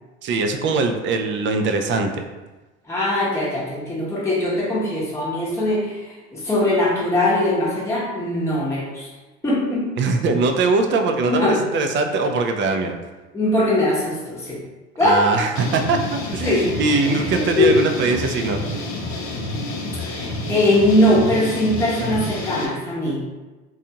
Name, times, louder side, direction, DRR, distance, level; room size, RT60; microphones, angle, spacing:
voice 1, 0.2-2.2 10.0-13.0 15.0-18.6, right 3 dB, 35° right, 5 dB, 0.4 m, -21 dB
voice 2, 2.8-9.1 9.4-9.9 11.3-11.6 13.3-14.6 15.0-15.7 16.4-16.7 17.0-17.8 19.9-23.2, left 1 dB, 10° left, -6 dB, 0.8 m, -21 dB
sound 1, 15.6-22.7, left 2 dB, 70° left, 0.6 m, -29 dB
2.5 x 2.3 x 2.8 m, 1.2 s
hypercardioid pair, 80°, 34 cm